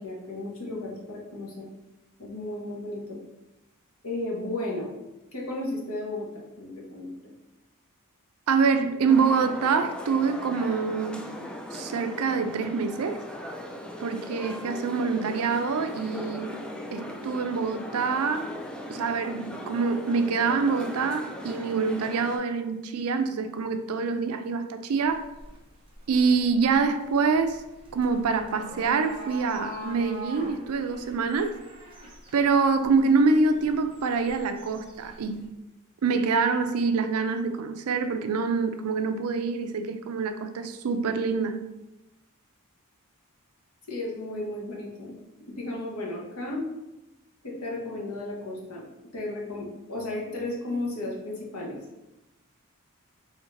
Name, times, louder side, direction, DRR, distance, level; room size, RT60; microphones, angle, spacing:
voice 1, 0.0-1.7 2.2-3.2 4.0-4.9 5.3-7.3 43.9-45.2 45.5-46.7 47.4-48.8 49.1-51.8, left 2 dB, 75° left, 1.2 m, -34 dB
voice 2, 8.5-11.3 11.7-13.2 14.0-16.6 16.9-18.5 18.9-25.3 26.1-27.6 27.9-31.6 32.3-35.5 36.0-41.6, right 4 dB, 75° right, 0.4 m, -25 dB
sound 1, 9.1-22.4, left 1 dB, 5° left, 0.3 m, -39 dB
sound 2, 25.0-35.4, equal, 25° right, 0.9 m, -45 dB
4.2 x 2.9 x 3.8 m
head